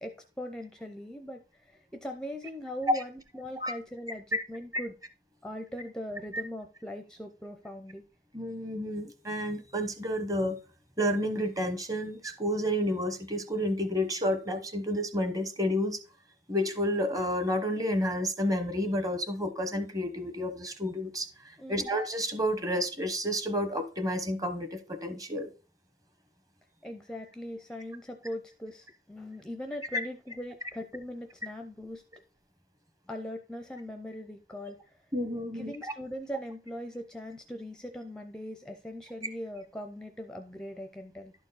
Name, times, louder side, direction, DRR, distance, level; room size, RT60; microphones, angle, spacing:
voice 1, 0.0-5.0 5.4-8.0 21.6-21.9 26.8-32.2 33.1-35.0 35.5-41.3, equal, 5° left, 0.6 m, -40 dB
voice 2, 8.3-10.6 11.0-16.0 16.5-25.5 29.9-30.0 35.1-35.9, equal, 20° right, 1.0 m, -30 dB
11.5 x 4.5 x 4.0 m
head